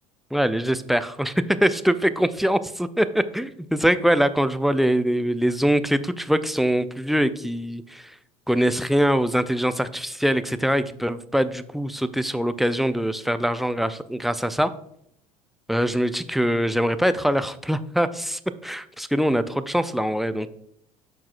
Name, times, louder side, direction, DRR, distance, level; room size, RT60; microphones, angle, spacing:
voice 1, 0.3-8.1 8.5-14.7 15.7-20.5, equal, ahead, 11 dB, 0.4 m, -23 dB
12.5 x 4.7 x 2.4 m, 0.72 s
figure-of-eight pair, 70°, 19 cm